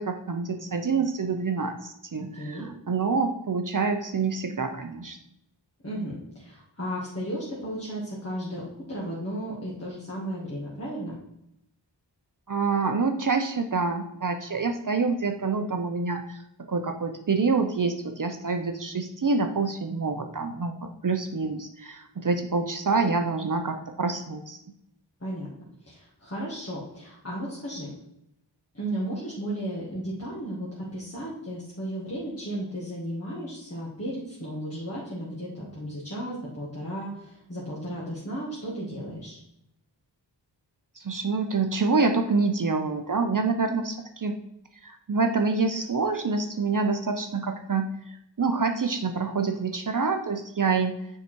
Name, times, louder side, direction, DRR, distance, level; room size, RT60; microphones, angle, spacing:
voice 1, 0.0-5.2 12.5-16.4 16.7-24.6 41.0-44.3 44.8-51.1, right 4 dB, 45° right, 6 dB, 0.7 m, -27 dB
voice 2, 2.2-2.7 5.8-8.6 8.9-11.2 25.2-25.5 25.8-27.9 28.7-39.4, right 1 dB, 35° left, -6 dB, 1.9 m, -34 dB
6.8 x 4.8 x 4.5 m, 0.80 s
wide cardioid pair, 75°, 43 cm